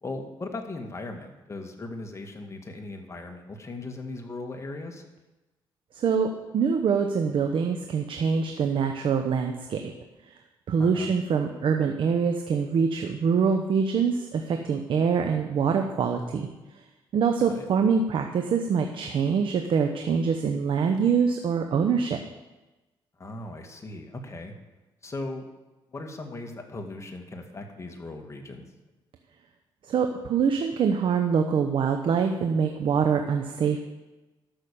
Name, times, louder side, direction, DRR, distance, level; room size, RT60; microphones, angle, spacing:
voice 1, 0.0-5.1 10.8-11.1 17.4-17.7 23.2-24.5 25.0-25.5 25.9-28.7, left 2 dB, 30° left, 3 dB, 2.1 m, -38 dB
voice 2, 5.9-9.9 10.3-10.4 10.7-16.5 17.1-22.2 29.9-33.8, right 6 dB, 65° right, 5 dB, 1.0 m, -24 dB
12.5 x 6.3 x 7.0 m, 1.1 s
cardioid pair, 75°, 10 cm